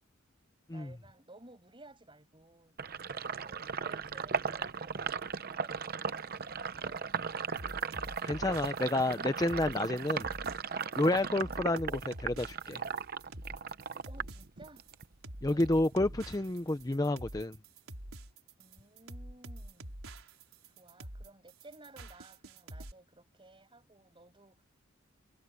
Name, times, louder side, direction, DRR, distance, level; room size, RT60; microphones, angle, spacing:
voice 1, 0.7-2.8 3.1-7.4 14.1-14.9 15.5-15.6 18.6-19.9 20.6-24.6, right 2 dB, 25° right, 6.7 m, -57 dB
Sink (filling or washing), 2.8-15.1 15.4-16.8, right 6 dB, 45° right, 0.8 m, -37 dB
sound 1, 7.6-22.9, right 1 dB, 90° right, 5.0 m, -46 dB
voice 2, 8.3-10.3 11.0-12.8 15.4-17.6, left 2 dB, 20° left, 0.6 m, -30 dB
head